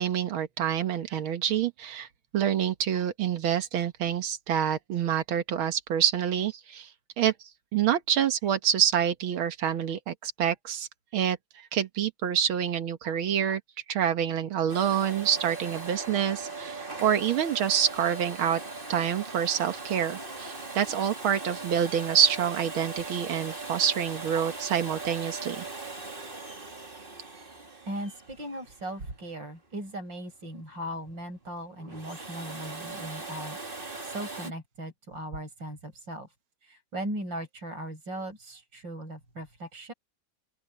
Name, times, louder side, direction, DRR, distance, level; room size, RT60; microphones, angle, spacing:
voice 1, 0.0-2.1 2.3-6.9 7.2-7.3 7.7-10.9 11.1-11.4 11.7-13.6 13.9-18.6 18.9-25.7, right 9 dB, 85° right, 2.1 m, -27 dB
Domestic sounds home sounds, 14.7-29.4 31.8-34.5, right 3 dB, 25° right, 2.8 m, -39 dB
voice 2, 27.9-36.3 36.6-39.9, right 1 dB, 65° right, 8.0 m, -38 dB
open air
omnidirectional pair, 2.2 m